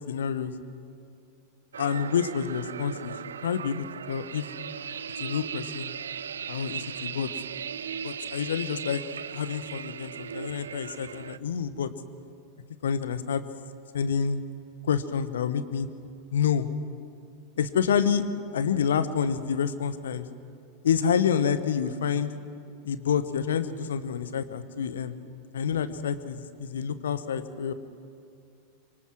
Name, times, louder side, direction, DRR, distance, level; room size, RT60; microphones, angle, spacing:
voice 1, 0.1-0.5 1.8-3.2 3.4-4.4 5.2-5.9 6.5-7.3 8.0-9.0 9.3-11.9 12.8-13.4 13.9-14.4 14.9-15.9 16.3-16.7 17.6-18.2 18.5-20.3 20.8-22.3 22.8-25.1 25.5-27.7, left 7 dB, 65° left, 13 dB, 1.2 m, -28 dB
sound 1, 1.7-11.4, right 8 dB, 65° right, 0.5 m, -38 dB
26.0 x 24.0 x 6.1 m, 2.5 s
figure-of-eight pair, 90°, 0 cm